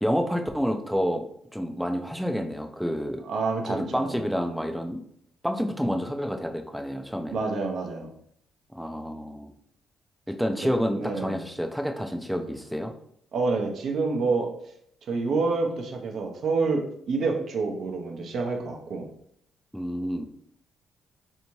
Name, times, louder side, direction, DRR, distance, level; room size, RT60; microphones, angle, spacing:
voice 1, 0.0-1.2 1.5-3.2 3.6-5.0 5.4-7.4 8.8-9.5 10.3-12.9 19.7-20.2, equal, ahead, 4 dB, 0.4 m, -28 dB
voice 2, 3.3-4.2 7.3-8.1 10.6-10.7 11.0-11.4 13.3-14.5 15.1-19.1, right 3 dB, 60° right, 3 dB, 0.7 m, -28 dB
3.4 x 2.7 x 3.0 m, 0.69 s
cardioid pair, 90°, 0 cm